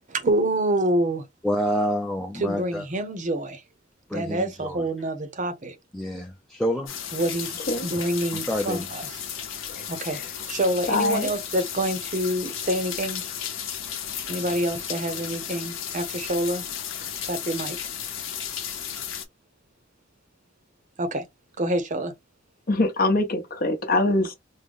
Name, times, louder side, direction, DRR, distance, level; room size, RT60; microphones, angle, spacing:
voice 1, 0.1-1.2 2.3-3.6 4.1-5.8 7.1-9.2 9.9-10.2 10.5-13.2 14.3-16.6 17.3-17.8 21.0-21.2 21.6-22.1, right 1 dB, 40° right, 0.7 m, -27 dB
voice 2, 1.4-2.8 4.1-4.8 5.9-6.9 8.3-8.9, equal, ahead, 0.4 m, -28 dB
sound 1, 6.9-19.2, left 9 dB, 85° left, 0.8 m, -34 dB
voice 3, 10.9-11.3 22.7-24.3, left 2 dB, 50° left, 0.9 m, -23 dB
3.7 x 2.1 x 3.5 m
head